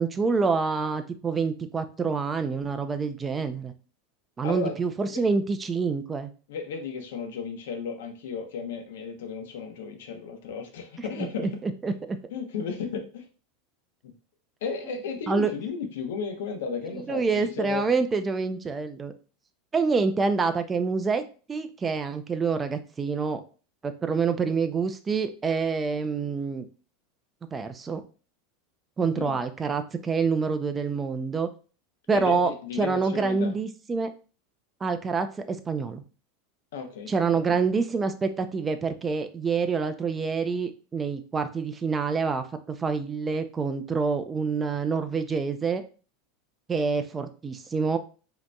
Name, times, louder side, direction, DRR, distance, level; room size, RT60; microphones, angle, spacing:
voice 1, 0.0-3.7 4.4-6.3 11.2-12.2 15.3-15.5 17.1-19.1 19.7-21.2 21.5-23.4 23.8-26.7 27.5-28.0 29.0-31.5 32.1-32.5 32.8-34.1 34.8-36.0 37.1-45.8 46.7-48.0, right 4 dB, 20° right, 9 dB, 0.5 m, -27 dB
voice 2, 4.4-4.8 5.0-5.2 6.5-11.6 12.3-13.3 14.0-14.1 14.6-17.9 29.1-29.4 32.1-33.5 36.7-37.1, left 5 dB, 80° left, 5 dB, 0.9 m, -34 dB
5.1 x 2.9 x 2.3 m, 0.37 s
supercardioid pair, 135°, 0 cm